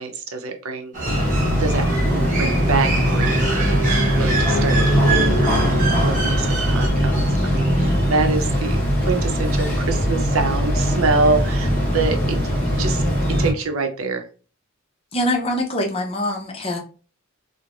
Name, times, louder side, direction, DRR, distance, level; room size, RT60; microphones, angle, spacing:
voice 1, 0.0-13.0 13.3-14.3, right 3 dB, 85° right, 5 dB, 0.6 m, -26 dB
sound 1, 0.9-6.9, right 3 dB, 40° right, 0.8 m, -26 dB
sound 2, 1.0-13.5, equal, 10° left, 1.1 m, -20 dB
voice 2, 15.1-16.8, left 1 dB, 30° left, 1 dB, 0.6 m, -23 dB
3.1 x 2.1 x 2.4 m, 0.37 s
head